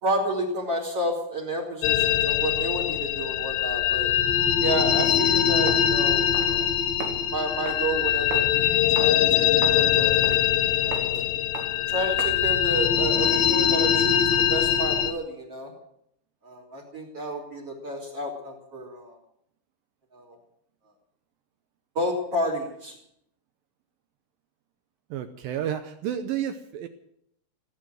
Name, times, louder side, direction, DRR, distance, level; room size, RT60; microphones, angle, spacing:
voice 1, 0.0-4.1 4.6-6.7 7.3-10.2 10.8-11.3 11.9-15.7 16.4-19.2 20.1-20.4 22.0-23.0, right 1 dB, 35° right, 1 dB, 4.0 m, -31 dB
sound 1, 1.8-15.1, left 10 dB, 80° left, 3.2 m, -22 dB
Walk footsteps, 4.9-12.6, right 5 dB, 65° right, 3.7 m, -40 dB
voice 2, 25.1-26.9, right 10 dB, 85° right, 9 dB, 2.0 m, -31 dB
17.0 x 9.1 x 9.3 m, 0.73 s
omnidirectional pair, 5.1 m